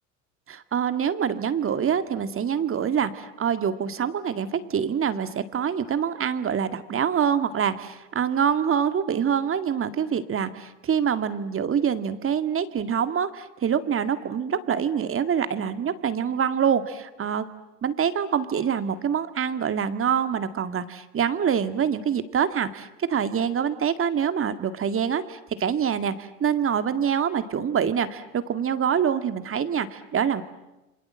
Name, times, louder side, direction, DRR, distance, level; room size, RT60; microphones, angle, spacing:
voice 1, 0.5-17.5 17.8-30.4, right 8 dB, 30° right, 11 dB, 2.0 m, -25 dB
28.5 x 26.0 x 7.6 m, 0.99 s
hypercardioid pair, 85°, 41 cm